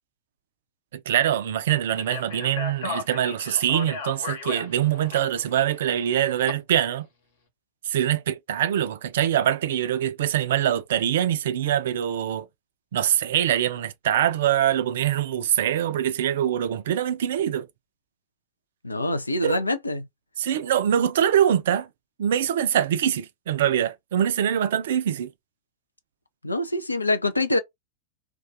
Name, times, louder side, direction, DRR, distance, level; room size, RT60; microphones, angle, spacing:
voice 1, 0.9-7.1 7.9-12.5 12.9-17.7 19.4-19.6 20.4-21.9 22.2-25.3, right 10 dB, 60° right, 0.3 m, -24 dB
Speech, 1.9-6.5, left 4 dB, 60° left, 0.9 m, -35 dB
voice 2, 18.8-20.1 26.4-27.6, left 2 dB, 80° left, 0.4 m, -25 dB
2.3 x 2.2 x 2.6 m
figure-of-eight pair, 90°, 0 cm